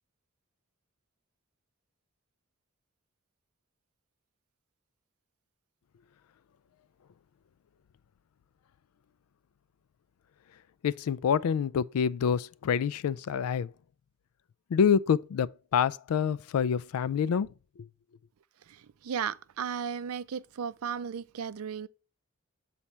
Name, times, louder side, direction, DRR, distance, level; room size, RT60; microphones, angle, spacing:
voice 1, 10.8-13.7 14.7-17.5 17.8-17.9, left 7 dB, 85° left, 0.3 m, -27 dB
voice 2, 19.0-21.9, right 7 dB, 80° right, 0.4 m, -35 dB
7.2 x 4.2 x 3.2 m
head